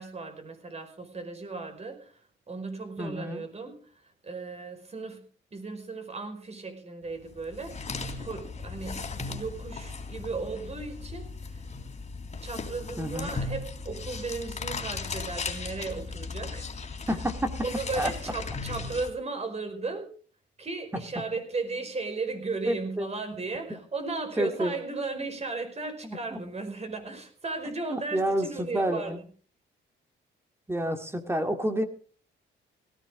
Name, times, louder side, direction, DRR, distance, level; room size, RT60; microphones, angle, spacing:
voice 1, 0.0-2.1 2.5-3.8 4.2-5.2 5.5-7.9 8.2-11.7 12.4-17.1 17.6-20.1 20.6-29.2, right 3 dB, 35° right, 7 dB, 5.1 m, -36 dB
voice 2, 3.0-3.4 13.0-13.3 17.1-17.5 18.0-18.1 20.9-21.0 22.7-23.1 23.7-23.8 24.4-24.7 26.0-26.4 27.6-29.2 30.7-31.9, right 1 dB, 10° right, 6 dB, 2.1 m, -29 dB
sound 1, 7.3-19.1, left 4 dB, 35° left, 3.3 m, -37 dB
18.0 x 15.0 x 3.8 m, 0.41 s
cardioid pair, 90°, 20 cm